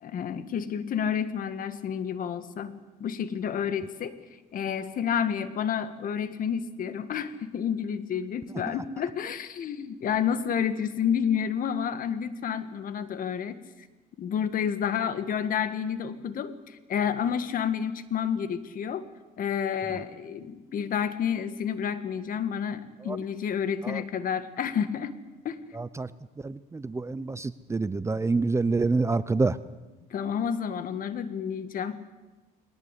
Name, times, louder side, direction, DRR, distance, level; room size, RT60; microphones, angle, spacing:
voice 1, 0.0-4.2 4.5-13.6 14.2-19.1 19.4-25.1 25.5-25.6 27.3-27.4 30.1-32.0, left 8 dB, 55° left, 11 dB, 1.7 m, -30 dB
voice 2, 25.7-26.1 26.4-29.6, right 3 dB, 15° right, 15 dB, 0.6 m, -27 dB
21.0 x 19.0 x 8.4 m, 1.2 s
cardioid pair, 110°, 17 cm